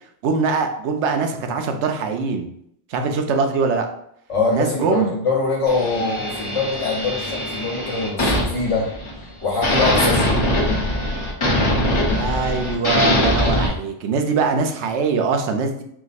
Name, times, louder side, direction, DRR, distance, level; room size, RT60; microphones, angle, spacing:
voice 1, 0.2-2.5 2.9-3.9 4.5-5.2 12.1-15.8, right 4 dB, 70° right, 5 dB, 0.9 m, -22 dB
voice 2, 4.3-8.9 9.4-10.5, left 3 dB, 65° left, -3 dB, 1.2 m, -23 dB
sound 1, 5.7-9.3 9.6-13.7, left 1 dB, 25° left, 0.9 m, -22 dB
4.7 x 2.1 x 4.1 m, 0.71 s
omnidirectional pair, 1.3 m